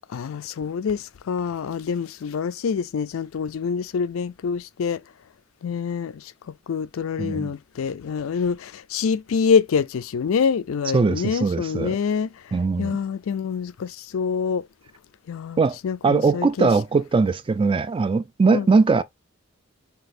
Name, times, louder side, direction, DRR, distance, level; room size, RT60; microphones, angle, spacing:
voice 1, 0.1-5.0 5.6-6.3 6.7-12.3 12.8-14.6 15.3-16.7 18.5-18.7, left 6 dB, 85° left, 0.4 m, -26 dB
voice 2, 7.2-7.5 10.9-12.0 12.5-13.0 15.6-15.8 16.0-19.0, right 4 dB, 25° right, 0.3 m, -20 dB
5.9 x 2.9 x 2.5 m
head